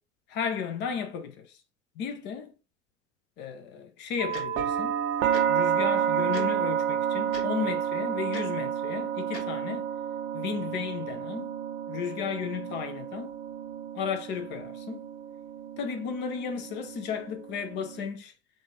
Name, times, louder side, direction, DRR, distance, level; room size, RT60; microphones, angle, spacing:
voice 1, 0.3-1.6 2.0-2.5 3.4-5.0 5.5-9.9 10.3-11.5 11.9-13.3 13.9-15.1 15.8-18.3, left 7 dB, 25° left, 0.5 m, -34 dB
sound 1, 4.2-18.1, right 9 dB, 45° right, 0.6 m, -30 dB
Tick-tock, 4.3-4.4 5.3-5.4 6.3-6.5 7.3-7.5 8.3-8.4 9.3-9.4, left 4 dB, 55° left, 1.2 m, -38 dB
3.7 x 2.4 x 3.9 m
figure-of-eight pair, 80°, 41 cm